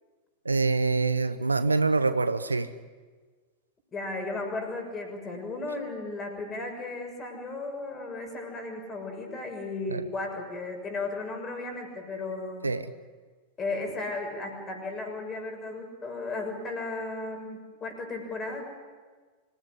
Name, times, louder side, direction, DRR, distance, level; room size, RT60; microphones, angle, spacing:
voice 1, 0.4-2.7 9.9-10.0 12.6-12.9, right 3 dB, 80° right, 13 dB, 1.0 m, -25 dB
voice 2, 3.9-12.7 13.6-18.6, left 3 dB, 20° left, 3 dB, 6.7 m, -35 dB
26.0 x 17.0 x 10.0 m, 1.4 s
figure-of-eight pair, 90°, 0 cm